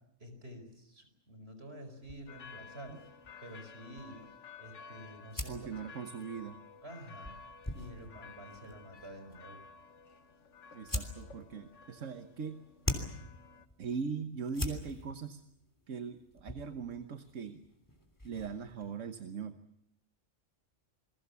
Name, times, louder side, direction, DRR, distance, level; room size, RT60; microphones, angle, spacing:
voice 1, 0.2-4.2 4.6-5.7 6.8-7.4 7.7-9.6, equal, 55° right, 8 dB, 5.1 m, -49 dB
sound 1, 2.0-18.9, left 1 dB, 15° left, 3.2 m, -45 dB
sound 2, 2.3-13.7, left 5 dB, 70° left, 1.6 m, -54 dB
voice 2, 5.5-6.6 10.7-12.6 13.8-15.4 15.9-17.6 18.2-19.6, right 6 dB, 75° right, 8 dB, 1.5 m, -40 dB
28.0 x 21.5 x 7.1 m, 0.77 s
omnidirectional pair, 1.3 m